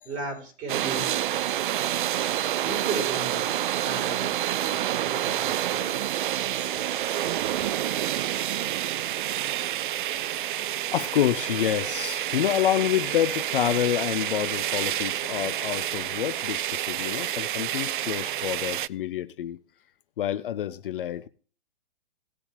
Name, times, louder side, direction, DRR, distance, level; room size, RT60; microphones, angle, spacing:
voice 1, 0.0-1.4 2.6-3.6 3.8-4.3 4.6-5.9 7.2-7.7, right 3 dB, 25° right, 4.4 m, -36 dB
sound 1, 0.7-18.9, right 12 dB, 55° right, 0.4 m, -28 dB
voice 2, 10.9-19.6 20.2-21.3, left 11 dB, 55° left, 0.7 m, -28 dB
18.5 x 6.9 x 3.4 m
hypercardioid pair, 130°, 32 cm